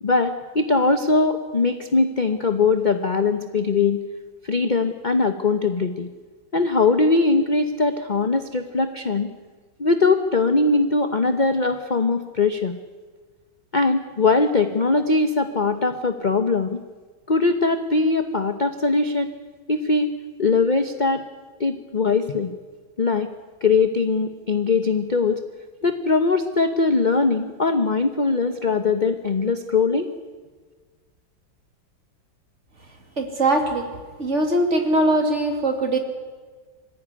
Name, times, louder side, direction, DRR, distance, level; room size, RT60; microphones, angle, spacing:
voice 1, 0.0-4.0 4.4-6.1 6.5-9.3 9.8-12.8 13.7-16.8 17.3-19.3 19.7-20.1 20.4-21.3 21.6-22.5 23.0-23.3 23.6-25.4 25.8-30.1, left 3 dB, 35° left, 8 dB, 0.7 m, -21 dB
voice 2, 33.2-33.9 34.2-36.0, right 1 dB, 35° right, 4 dB, 2.9 m, -21 dB
25.0 x 15.5 x 9.8 m, 1.4 s
omnidirectional pair, 2.2 m